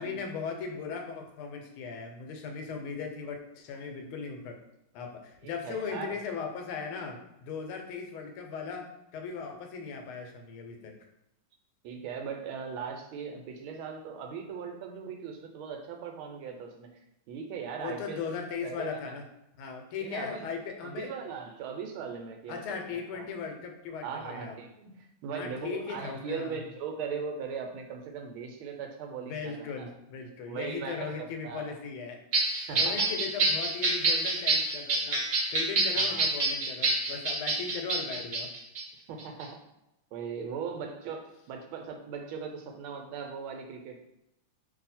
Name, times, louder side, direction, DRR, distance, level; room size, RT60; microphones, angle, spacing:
voice 1, 0.0-4.6 4.9-11.0 17.8-19.2 19.6-21.1 22.5-24.6 25.3-26.6 29.3-32.2 32.7-35.2 35.5-38.5, left 5 dB, 85° left, 4 dB, 1.5 m, -38 dB
voice 2, 5.4-6.2 11.8-16.9 17.3-18.3 18.6-19.1 20.0-20.5 20.8-23.3 24.0-29.9 30.5-31.7 32.7-33.1 35.9-36.2 39.1-39.6 40.1-44.0, right 6 dB, 85° right, 3 dB, 1.5 m, -39 dB
sound 1, 32.3-38.8 39.2-39.4, right 2 dB, 65° right, 0.6 m, -27 dB
3.0 x 2.7 x 4.1 m, 0.87 s
omnidirectional pair, 2.3 m